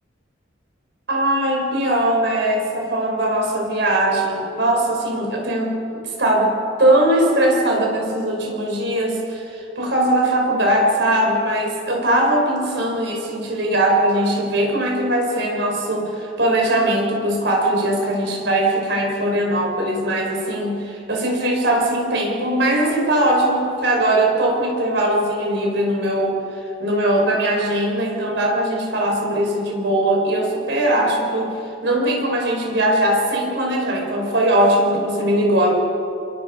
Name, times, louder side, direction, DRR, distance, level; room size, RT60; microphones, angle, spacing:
voice 1, 1.1-26.4 26.8-31.6 31.8-35.7, right 1 dB, 65° right, 0 dB, 5.3 m, -20 dB
29.0 x 22.5 x 5.4 m, 2.7 s
head